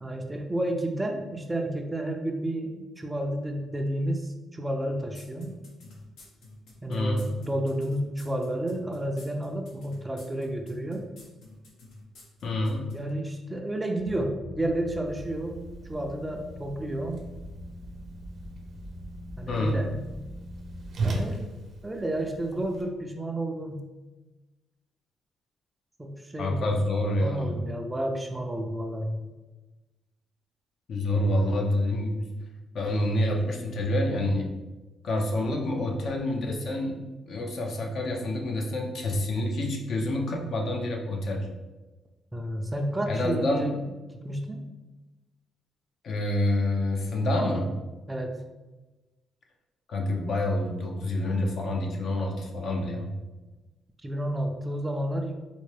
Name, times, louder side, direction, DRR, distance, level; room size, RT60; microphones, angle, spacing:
voice 1, 0.0-5.5 6.8-11.1 12.9-15.6 15.9-17.2 19.4-19.9 21.0-21.5 21.8-23.8 26.0-26.7 27.2-29.2 31.3-31.6 42.3-43.8 44.1-44.6 48.1-48.4 54.0-55.3, right 1 dB, 15° right, 3 dB, 0.4 m, -31 dB
sound 1, 5.1-13.0, left 2 dB, 85° left, 0.9 m, -50 dB
voice 2, 6.9-7.2 12.4-12.9 19.5-19.9 26.4-27.6 30.9-32.3 32.7-34.6 35.0-37.0 37.3-41.5 43.1-43.7 46.0-47.7 49.9-53.1, left 1 dB, 60° left, 1 dB, 0.6 m, -27 dB
sound 2, 14.0-20.9, equal, 20° left, 0.7 m, -43 dB
Whoosh swoosh swish, 15.1-22.8, right 2 dB, 60° right, 0.7 m, -38 dB
4.3 x 2.2 x 3.2 m, 1.1 s
cardioid pair, 90°, 0 cm